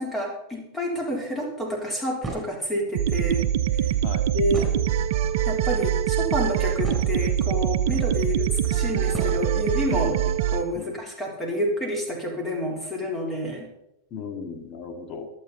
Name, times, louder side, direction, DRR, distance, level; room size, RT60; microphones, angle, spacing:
voice 1, 0.0-3.5 3.7-3.9 4.3-4.7 5.5-10.2 10.5-13.7, left 1 dB, 15° left, 0 dB, 3.8 m, -29 dB
sound 1, 2.2-2.7 4.5-5.2 6.1-6.2 6.5-7.4 8.3-8.4 9.1-9.5, right 2 dB, 5° right, 5.2 m, -34 dB
sound 2, 2.9-10.6, right 10 dB, 50° right, 0.9 m, -24 dB
voice 2, 14.1-15.3, left 5 dB, 35° left, 6 dB, 2.2 m, -37 dB
23.5 x 7.8 x 4.1 m, 0.84 s
figure-of-eight pair, 90°, 0 cm